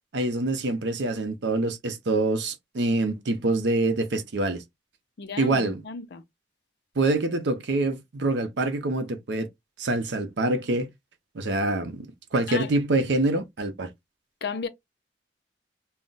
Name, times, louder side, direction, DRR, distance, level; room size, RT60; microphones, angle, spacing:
voice 1, 0.1-4.6 5.4-5.8 7.0-9.5 9.8-10.9 11.3-13.9, right 2 dB, 85° right, 0.6 m, -25 dB
voice 2, 5.2-6.2 12.5-12.7 14.4-14.7, left 5 dB, 65° left, 0.5 m, -33 dB
2.4 x 2.0 x 3.8 m
head